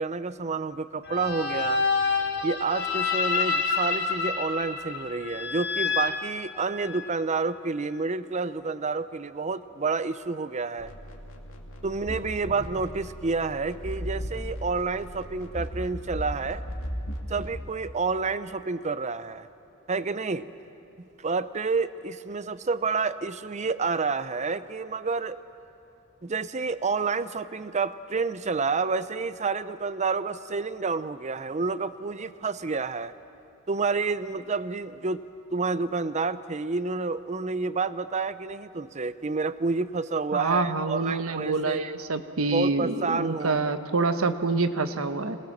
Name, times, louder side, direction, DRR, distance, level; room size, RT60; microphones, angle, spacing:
voice 1, 0.0-1.8 2.4-10.9 11.8-16.6 17.3-19.5 19.9-20.5 21.2-25.4 26.2-33.1 33.7-35.2 35.5-41.9 42.5-43.6, right 4 dB, 35° right, 14 dB, 0.6 m, -29 dB
sound 1, 1.1-7.1, left 4 dB, 50° left, 2.4 m, -28 dB
sound 2, 10.8-17.6, equal, 75° left, 2.5 m, -37 dB
voice 2, 40.3-45.4, right 3 dB, 75° right, 9 dB, 1.2 m, -26 dB
26.5 x 20.0 x 7.3 m, 2.9 s
head